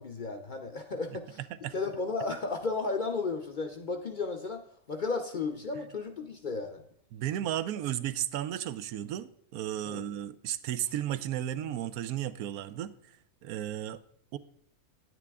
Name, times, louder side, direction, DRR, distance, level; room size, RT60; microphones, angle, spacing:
voice 1, 0.0-1.4 1.7-4.6 4.9-6.8 9.8-10.0, left 3 dB, 45° left, 0.6 m, -34 dB
voice 2, 7.1-12.9 13.4-14.0 14.3-14.4, right 11 dB, 90° right, 1.1 m, -34 dB
9.8 x 9.2 x 3.5 m
omnidirectional pair, 1.5 m